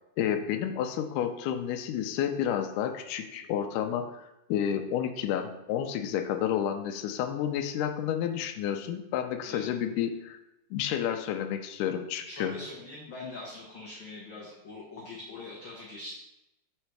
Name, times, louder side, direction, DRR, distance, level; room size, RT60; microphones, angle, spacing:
voice 1, 0.2-10.4 10.7-12.6, left 9 dB, 85° left, 6 dB, 2.1 m, -30 dB
voice 2, 12.3-16.1, left 2 dB, 60° left, -5 dB, 1.3 m, -42 dB
6.5 x 4.1 x 4.6 m, 0.90 s
omnidirectional pair, 3.6 m